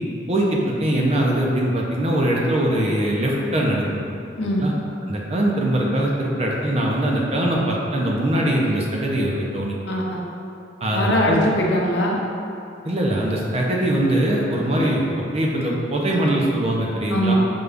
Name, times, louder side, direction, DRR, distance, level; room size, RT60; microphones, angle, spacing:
voice 1, 0.3-4.0 4.4-4.7 5.1-9.7 10.8-11.4 12.8-17.3, right 1 dB, 35° right, -2 dB, 0.5 m, -22 dB
voice 2, 9.8-10.2 10.9-12.3 17.1-17.3, left 1 dB, 65° left, -2 dB, 0.6 m, -21 dB
5.2 x 2.3 x 3.4 m, 2.7 s
head